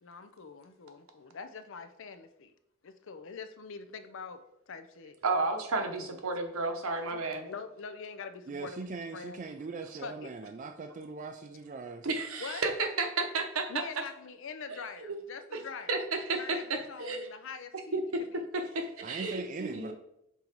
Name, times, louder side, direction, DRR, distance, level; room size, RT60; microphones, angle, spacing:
voice 1, 0.0-2.5 2.8-4.4 4.7-5.1 6.0-6.2 7.1-9.4 10.0-10.5 12.4-12.8 13.7-15.9 16.4-18.0 18.3-18.4, left 5 dB, 60° left, 9 dB, 0.6 m, -44 dB
voice 2, 5.2-7.5 12.0-13.8 15.0-15.2 15.9-17.3 17.9-18.2 18.5-19.9, right 3 dB, 75° right, 5 dB, 1.0 m, -32 dB
voice 3, 8.5-12.1 19.0-19.9, right 3 dB, 35° right, 5 dB, 0.3 m, -40 dB
5.5 x 3.8 x 4.5 m, 0.81 s
head